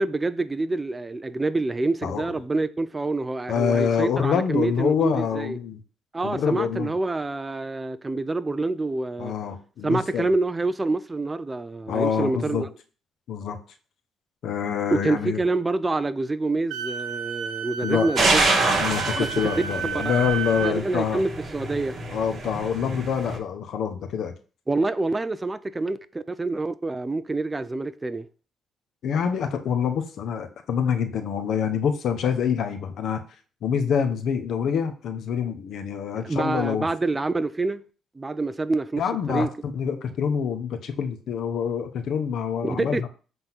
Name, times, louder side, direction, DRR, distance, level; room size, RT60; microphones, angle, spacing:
voice 1, 0.0-5.6 6.1-9.3 9.8-12.7 14.9-18.5 19.2-19.5 20.6-22.0 24.7-28.3 36.2-37.8 38.2-39.5 42.6-43.1, right 2 dB, 20° right, 0.5 m, -27 dB
voice 2, 3.5-5.8 6.2-6.9 9.2-10.3 11.9-12.7 13.3-13.6 14.4-15.4 17.8-18.1 18.4-18.5 18.8-21.2 22.1-24.3 29.0-33.2 33.6-36.9 39.0-39.5 39.7-43.1, left 7 dB, 70° left, 1.2 m, -26 dB
Wind instrument woodwind instrument, 16.7-20.8, right 7 dB, 90° right, 0.8 m, -32 dB
sound 1, 18.2-23.4, right 3 dB, 45° right, 3.2 m, -26 dB
8.0 x 3.8 x 6.0 m
cardioid pair, 90°, 0 cm